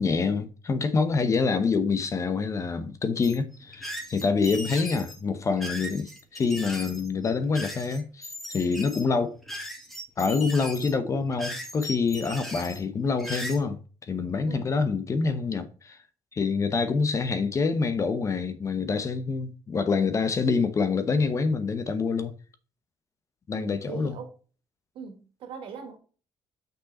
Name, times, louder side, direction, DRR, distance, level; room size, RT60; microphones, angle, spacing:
voice 1, 0.0-9.4 10.2-13.8 14.1-16.0 16.3-22.3 23.5-24.2, left 4 dB, 35° left, 0.9 m, -26 dB
sound 1, 3.2-13.6, equal, ahead, 1.9 m, -38 dB
voice 2, 23.5-24.3 24.9-26.0, right 6 dB, 75° right, 2.0 m, -41 dB
6.4 x 5.5 x 4.2 m
cardioid pair, 110°, 9 cm